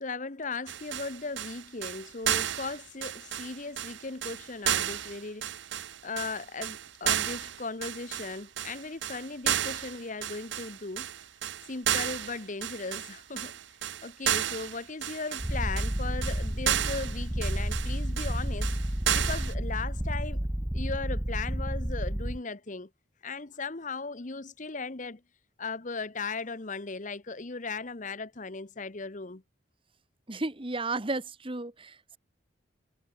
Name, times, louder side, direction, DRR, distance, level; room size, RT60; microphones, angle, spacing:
voice 1, 0.0-5.6 6.0-11.1 11.7-13.5 14.0-18.7 19.1-20.5 20.7-22.9 23.2-25.2 25.6-29.4, left 4 dB, 40° left, 1.0 m, -37 dB
sound 1, 0.7-19.5, right 11 dB, 65° right, 0.7 m, -32 dB
Purr, 15.4-22.4, equal, 10° right, 0.7 m, -31 dB
voice 2, 30.3-32.2, right 2 dB, 25° right, 1.2 m, -33 dB
head